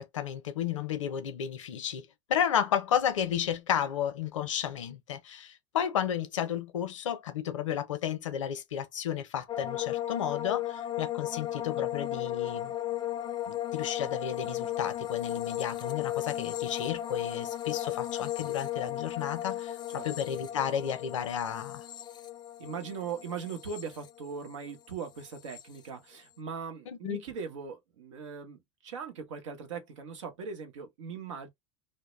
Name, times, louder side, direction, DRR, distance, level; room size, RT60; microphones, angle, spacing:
voice 1, 0.0-12.7 13.5-21.8 26.9-27.2, left 9 dB, 90° left, 0.6 m, -32 dB
sound 1, 9.5-24.7 25.0-25.6, left 12 dB, 30° left, 0.4 m, -35 dB
voice 2, 22.6-31.5, right 6 dB, 85° right, 0.8 m, -40 dB
2.1 x 2.1 x 3.0 m
hypercardioid pair, 90°, 16 cm